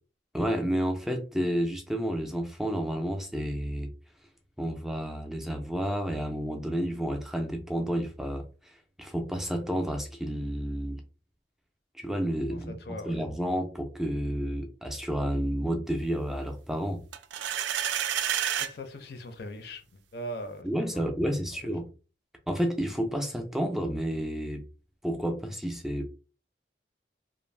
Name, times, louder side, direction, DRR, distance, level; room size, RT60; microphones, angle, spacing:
voice 1, 0.3-3.9 4.6-8.4 9.0-11.0 12.0-12.7 13.0-17.0 20.6-21.8 22.5-24.6 25.0-26.1, equal, ahead, 0.4 m, -30 dB
voice 2, 12.5-13.1 18.6-20.7 20.9-21.0, equal, 65° left, 0.5 m, -40 dB
sound 1, 17.1-18.7, right 10 dB, 85° right, 0.3 m, -29 dB
2.5 x 2.0 x 3.1 m
head